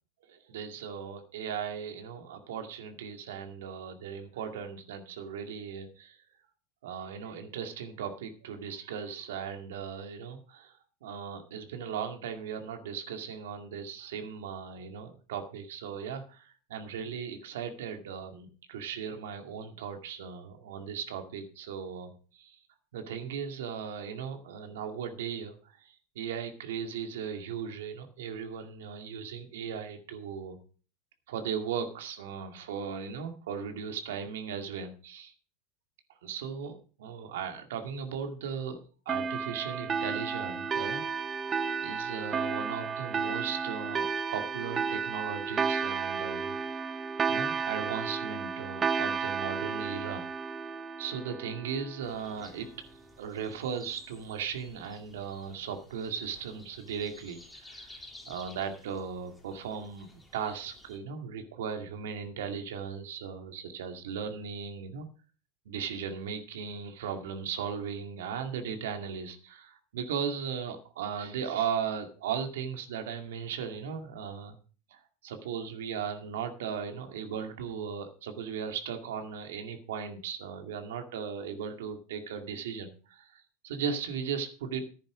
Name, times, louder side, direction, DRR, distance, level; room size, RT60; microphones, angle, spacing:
voice 1, 0.3-6.2 6.8-10.7 11.0-22.6 22.9-30.6 31.3-35.3 36.2-38.8 39.1-44.0 44.3-47.0 47.3-50.3 51.0-52.7 53.2-57.9 58.3-65.1 65.7-74.6 74.9-84.8, right 7 dB, 85° right, 6 dB, 2.2 m, -37 dB
sound 1, 39.1-52.2, right 5 dB, 20° right, 0.5 m, -32 dB
sound 2, 52.0-61.0, left 2 dB, 5° left, 2.5 m, -54 dB
10.5 x 10.0 x 4.9 m, 0.38 s
supercardioid pair, 135°, 0 cm